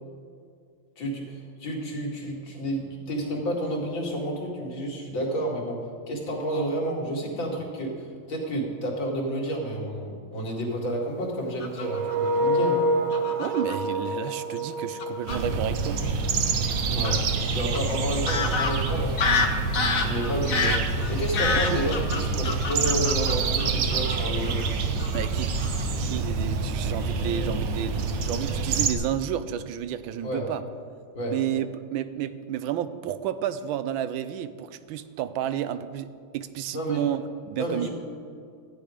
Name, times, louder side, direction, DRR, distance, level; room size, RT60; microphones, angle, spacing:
voice 1, 1.0-5.8 6.1-12.8 16.8-17.2 17.5-19.7 20.0-20.8 21.1-24.6 30.2-30.4 31.1-31.3 36.7-37.0 37.6-37.9, right 1 dB, 75° left, -2 dB, 3.0 m, -30 dB
Fowl / Bird vocalization bird call bird song, 11.6-12.3 13.1-13.8 14.6-14.7 15.0-15.4 17.0-17.2 17.7-17.8 18.3-24.2 24.4-24.7 25.0-25.3 25.6-25.8, left 4 dB, 50° left, 1.2 m, -28 dB
sound 1, 11.8-16.6, right 1 dB, 55° right, 1.4 m, -28 dB
voice 2, 13.4-16.0 21.7-21.8 25.1-30.6 31.3-37.9, right 10 dB, 90° right, 13 dB, 1.4 m, -31 dB
sound 2, 15.3-28.9, right 4 dB, 70° right, 1.5 m, -27 dB
13.5 x 9.3 x 5.0 m, 2.2 s
omnidirectional pair, 2.1 m